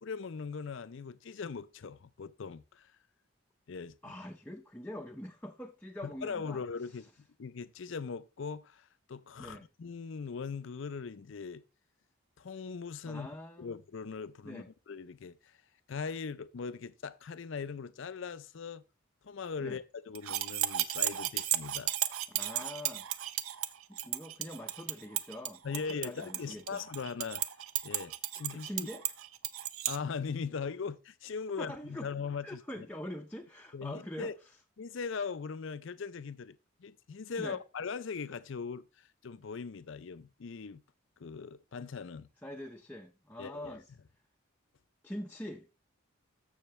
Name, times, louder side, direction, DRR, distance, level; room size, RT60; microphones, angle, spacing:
voice 1, 0.0-2.9 3.7-4.1 6.0-11.6 12.4-13.3 13.6-15.6 15.9-18.8 19.2-21.9 25.6-27.4 27.8-28.9 29.9-32.6 33.7-34.3 34.8-40.8 41.2-42.3 43.4-43.8, left 5 dB, 60° left, 0.5 m, -40 dB
voice 2, 4.0-6.6 9.4-9.7 13.1-13.7 14.4-14.7 19.6-19.8 22.3-23.1 23.9-25.6 26.0-26.8 28.5-29.1 31.6-32.1 32.4-34.3 37.4-37.6 42.4-43.9 45.0-45.7, left 1 dB, 10° left, 0.6 m, -43 dB
sound 1, 20.2-30.0, right 13 dB, 80° right, 0.7 m, -34 dB
14.0 x 6.4 x 3.2 m
head